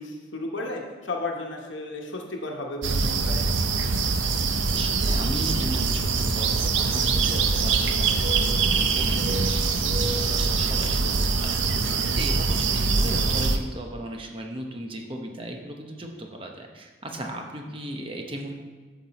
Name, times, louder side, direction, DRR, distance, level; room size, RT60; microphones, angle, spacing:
voice 1, 0.0-3.5, left 2 dB, 85° left, 1 dB, 1.1 m, -33 dB
sound 1, 2.8-13.6, right 4 dB, 85° right, 0.6 m, -23 dB
voice 2, 4.7-18.5, right 1 dB, 30° right, 2 dB, 0.8 m, -37 dB
8.6 x 6.0 x 4.1 m, 1.4 s
head